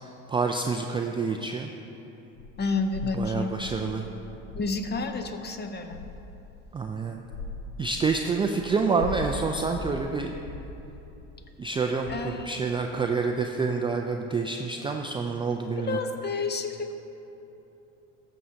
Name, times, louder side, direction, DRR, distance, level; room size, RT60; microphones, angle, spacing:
voice 1, 0.0-1.7 3.1-4.0 6.7-7.2 7.8-10.3 11.6-16.0, right 4 dB, 15° right, 3 dB, 0.3 m, -28 dB
sound 1, 2.4-12.7, left 2 dB, 75° left, 0.8 m, -41 dB
voice 2, 2.6-3.6 4.5-6.0 12.1-12.6 15.7-16.9, left 3 dB, 25° left, 7 dB, 0.7 m, -30 dB
14.0 x 6.4 x 2.7 m, 2.9 s
hypercardioid pair, 85°, 37 cm